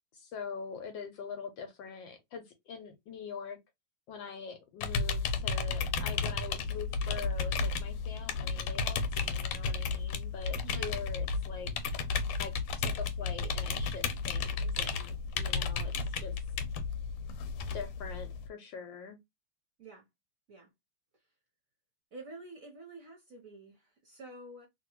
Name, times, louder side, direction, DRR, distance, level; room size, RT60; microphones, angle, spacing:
voice 1, 0.1-3.6 4.1-11.7 12.4-15.9 16.2-16.4 17.7-19.2, left 6 dB, 70° left, 1.2 m, -44 dB
sound 1, 4.8-18.5, left 4 dB, 85° left, 1.5 m, -33 dB
voice 2, 10.6-10.9 19.8-20.1 20.5-20.7 22.1-24.7, right 2 dB, 55° right, 0.9 m, -49 dB
2.9 x 2.9 x 2.9 m
omnidirectional pair, 2.4 m